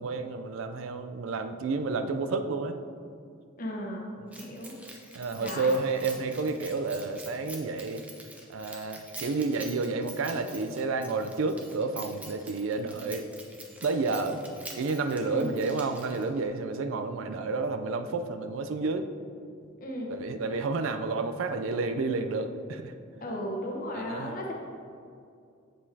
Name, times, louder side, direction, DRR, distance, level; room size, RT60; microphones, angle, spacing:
voice 1, 0.0-2.8 5.1-8.0 8.5-13.3 13.8-14.4 14.8-19.1 20.1-22.9 24.0-24.3, right 3 dB, 85° right, 8 dB, 0.4 m, -30 dB
voice 2, 3.6-4.1 4.4-4.7 5.4-5.8 15.3-15.5 19.8-20.2 23.2-24.5, left 1 dB, 45° left, -1 dB, 1.0 m, -35 dB
Keys jangling, 4.3-16.4, right 1 dB, 5° right, 0.6 m, -47 dB
7.7 x 5.0 x 2.7 m, 2.4 s
head